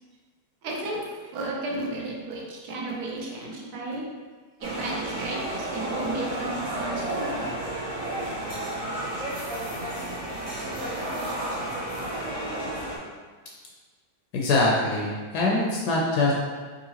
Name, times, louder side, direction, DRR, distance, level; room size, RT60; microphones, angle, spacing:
voice 1, 0.6-1.0 1.3-4.1 4.6-7.5, right 2 dB, 70° right, -1 dB, 1.1 m, -33 dB
sound 1, 4.6-13.0, right 1 dB, 45° right, 0.4 m, -32 dB
voice 2, 14.3-16.3, left 2 dB, 75° left, -3 dB, 1.1 m, -23 dB
3.7 x 2.6 x 2.8 m, 1.4 s
omnidirectional pair, 1.8 m